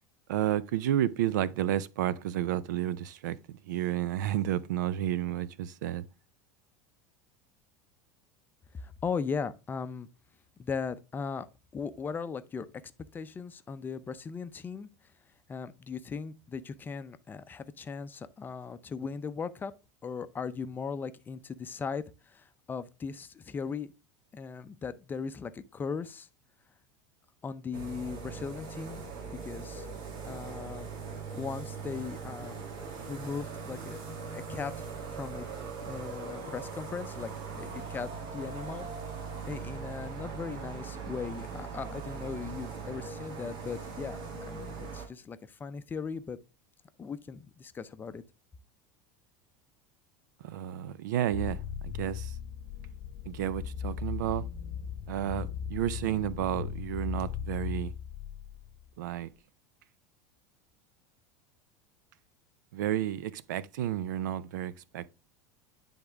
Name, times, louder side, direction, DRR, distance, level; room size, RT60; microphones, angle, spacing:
voice 1, 0.3-3.4 3.7-6.0 50.4-52.3 53.3-54.4 55.1-57.9 59.0-59.3 62.7-65.1, right 12 dB, 90° right, 0.4 m, -31 dB
voice 2, 8.7-10.1 10.6-11.5 11.7-12.7 13.1-14.9 15.5-19.7 20.0-23.9 24.3-26.3 27.4-29.0 29.4-29.9 30.2-30.9 31.3-32.6 33.1-34.0 34.3-35.5 35.8-38.9 39.4-46.4 47.0-48.2, left 5 dB, 20° left, 0.5 m, -38 dB
sound 1, 27.7-45.1, right 5 dB, 55° right, 1.9 m, -40 dB
sound 2, 51.3-58.8, left 7 dB, 55° left, 0.7 m, -37 dB
9.7 x 3.6 x 3.4 m
supercardioid pair, 120°, 10 cm